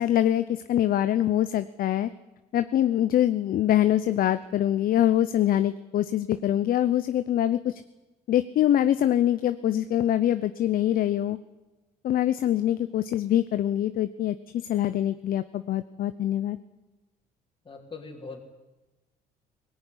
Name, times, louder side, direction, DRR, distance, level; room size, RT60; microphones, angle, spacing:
voice 1, 0.0-2.1 2.5-7.8 8.3-11.4 12.0-16.6, left 11 dB, 60° left, 12 dB, 0.9 m, -24 dB
voice 2, 17.7-18.4, left 4 dB, 30° left, -4 dB, 3.7 m, -41 dB
19.5 x 18.5 x 10.0 m, 1.1 s
cardioid pair, 110°, 17 cm